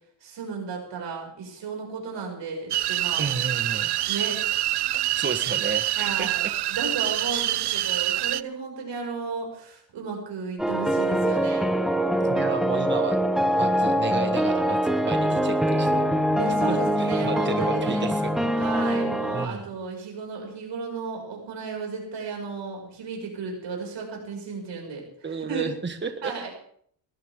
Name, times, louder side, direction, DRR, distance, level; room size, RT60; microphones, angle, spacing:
voice 1, 0.2-3.3 4.1-4.4 6.0-11.7 16.4-18.1 18.6-25.7 26.2-26.5, right 4 dB, 85° right, 1 dB, 6.4 m, -34 dB
sound 1, 2.7-8.4, right 14 dB, 65° right, 0.6 m, -26 dB
voice 2, 3.2-3.9 5.2-6.5 12.3-13.2 13.5-16.1 16.7-18.3 19.3-19.7 25.2-26.3, right 4 dB, 25° right, 7 dB, 1.5 m, -32 dB
sound 2, 10.6-19.5, equal, ahead, 1.2 m, -23 dB
21.5 x 14.5 x 3.8 m, 0.63 s
cardioid pair, 90°, 43 cm